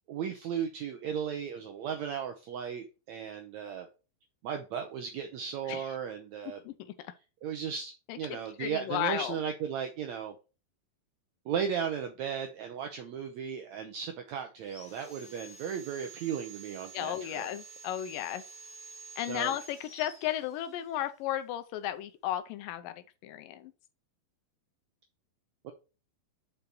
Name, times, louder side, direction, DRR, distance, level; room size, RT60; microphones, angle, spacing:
voice 1, 0.1-3.9 4.4-6.6 7.4-10.4 11.4-17.5 19.2-19.5 25.6-25.7, right 7 dB, 80° right, 1.6 m, -36 dB
voice 2, 8.1-9.4 16.9-18.4 19.2-23.0 23.2-23.7, left 12 dB, 80° left, 2.2 m, -34 dB
Sawing, 14.6-21.1, right 4 dB, 5° left, 0.8 m, -49 dB
5.7 x 5.3 x 4.5 m
omnidirectional pair, 4.2 m